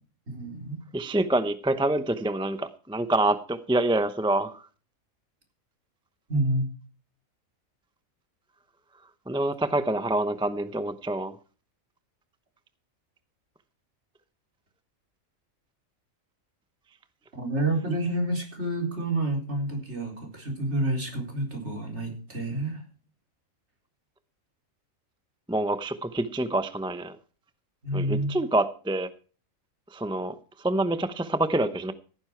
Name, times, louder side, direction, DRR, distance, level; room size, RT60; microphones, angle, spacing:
voice 1, 0.3-0.8 6.3-6.7 17.4-22.8 27.8-28.3, right 1 dB, 50° right, 4.3 m, -29 dB
voice 2, 0.9-4.7 9.3-11.4 25.5-27.2 27.9-29.1 29.9-31.9, right 1 dB, 5° right, 0.6 m, -26 dB
17.0 x 9.7 x 4.5 m
omnidirectional pair, 1.5 m